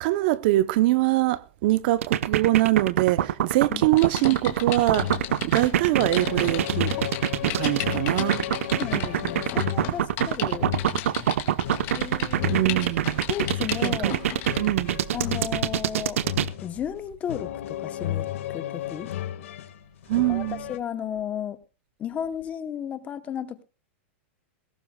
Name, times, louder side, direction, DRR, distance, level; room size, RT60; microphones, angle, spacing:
voice 1, 0.0-5.1 5.4-7.0 7.4-8.4 12.5-13.2 13.8-14.1 14.6-15.0 20.1-20.6, right 17 dB, 45° right, 0.7 m, -23 dB
sound 1, 2.0-16.5, right 11 dB, 80° right, 0.8 m, -24 dB
Typing, 4.0-14.7 15.2-15.4, left 13 dB, 35° left, 2.2 m, -36 dB
sound 2, 4.9-20.8, left 12 dB, 75° left, 1.7 m, -34 dB
voice 2, 8.8-10.8 12.0-12.7 13.3-14.2 15.1-16.2 16.6-19.1 20.3-21.6 22.0-23.6, left 9 dB, 20° left, 0.9 m, -34 dB
20.0 x 17.0 x 2.3 m
supercardioid pair, 160°, 7 cm